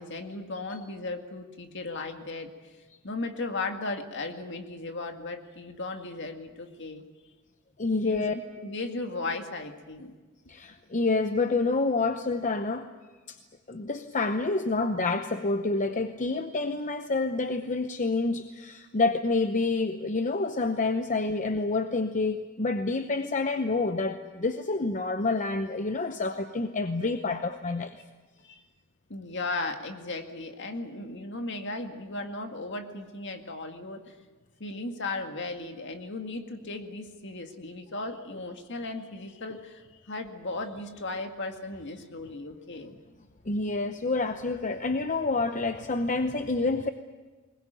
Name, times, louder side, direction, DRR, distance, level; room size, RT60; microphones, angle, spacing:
voice 1, 0.0-2.5 3.0-7.0 8.0-10.1 28.4-28.6 29.1-34.1 34.6-43.0, left 2 dB, 55° left, 5 dB, 2.0 m, -36 dB
voice 2, 7.8-8.3 10.5-12.9 13.3-13.4 13.7-28.0 43.5-46.9, left 3 dB, 35° left, 8 dB, 0.8 m, -28 dB
21.5 x 20.5 x 9.1 m, 1.3 s
head